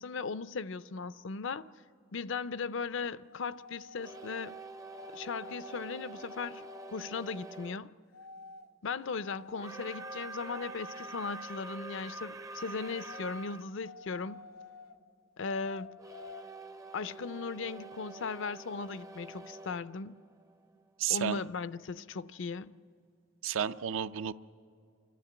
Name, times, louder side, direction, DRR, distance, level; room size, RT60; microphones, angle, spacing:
voice 1, 0.0-1.7 2.1-4.5 5.1-6.7 6.9-7.9 8.8-14.4 15.4-16.0 16.9-20.1 21.1-22.7, left 4 dB, 60° left, 0.5 m, -37 dB
sound 1, 3.3-4.4 4.9-7.0 8.1-8.7 9.1-11.6 12.7-15.0 15.4-16.4, left 3 dB, 90° left, 0.8 m, -50 dB
sound 2, 4.0-7.8 9.5-13.7 16.0-20.8, right 2 dB, 15° right, 0.5 m, -46 dB
voice 2, 21.0-21.4 23.4-24.3, right 8 dB, 70° right, 0.5 m, -31 dB
29.5 x 12.5 x 8.7 m
head